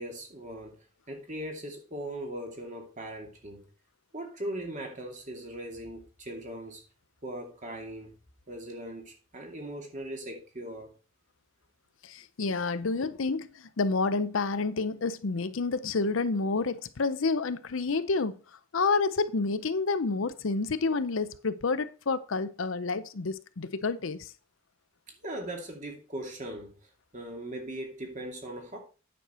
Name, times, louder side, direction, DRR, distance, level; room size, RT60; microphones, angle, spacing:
voice 1, 0.0-3.7 4.1-6.8 7.2-8.1 8.5-10.9 25.2-26.8 27.1-28.8, right 1 dB, 35° right, 2.4 m, -39 dB
voice 2, 12.0-13.5 13.8-18.4 18.7-24.3, left 4 dB, 75° left, 0.7 m, -29 dB
9.3 x 6.5 x 4.4 m
head